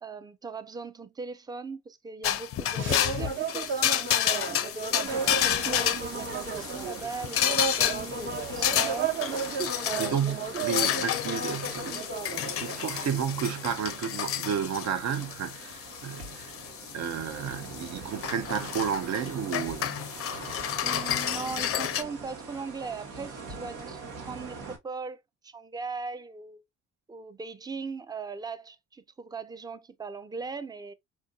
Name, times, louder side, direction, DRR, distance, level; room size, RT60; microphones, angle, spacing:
voice 1, 0.0-4.6 4.9-9.1 9.8-10.4 20.8-26.6 27.1-30.9, right 5 dB, 15° right, 0.4 m, -39 dB
sound 1, 2.2-22.0, left 11 dB, 50° left, 0.4 m, -31 dB
sound 2, 2.8-13.1, right 5 dB, 40° right, 1.0 m, -34 dB
sound 3, 5.0-24.8, right 4 dB, 90° right, 1.2 m, -43 dB
voice 2, 9.5-12.0 12.3-16.5 16.9-20.0, right 8 dB, 65° right, 0.6 m, -32 dB
4.4 x 2.6 x 2.3 m
cardioid pair, 90°, 30 cm